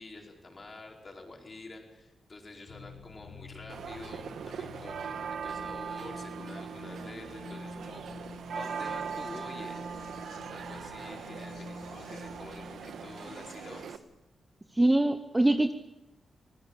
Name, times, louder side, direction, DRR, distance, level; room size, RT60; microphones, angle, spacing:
voice 1, 0.0-9.8 10.5-14.0, left 2 dB, 30° left, 1 dB, 4.7 m, -48 dB
sound 1, 2.7-13.8, left 2 dB, 85° left, 7.6 m, -47 dB
sound 2, 3.7-14.0, right 7 dB, 75° right, 1.4 m, -40 dB
voice 2, 14.7-15.7, right 1 dB, 10° right, 8 dB, 0.8 m, -23 dB
24.5 x 20.5 x 7.5 m, 0.95 s
wide cardioid pair, 155°, 0 cm